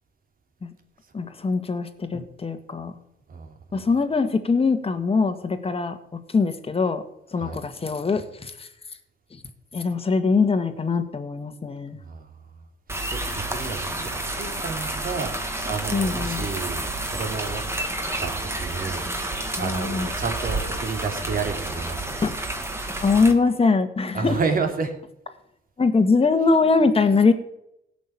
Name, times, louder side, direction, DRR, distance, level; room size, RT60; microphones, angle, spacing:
voice 1, 1.1-3.0 3.7-6.0 6.3-7.0 7.3-8.7 9.7-12.0 15.9-16.5 19.6-20.1 22.2-22.4 23.0-24.4 25.8-27.3, left 4 dB, 30° left, 8 dB, 1.9 m, -22 dB
voice 2, 12.0-12.3 12.9-17.6 18.2-22.2 24.1-24.9, right 4 dB, 45° right, 4 dB, 3.1 m, -31 dB
sound 1, 12.9-23.3, right 1 dB, 15° right, 2.1 m, -30 dB
16.5 x 6.3 x 8.8 m, 0.79 s
cardioid pair, 90°, 20 cm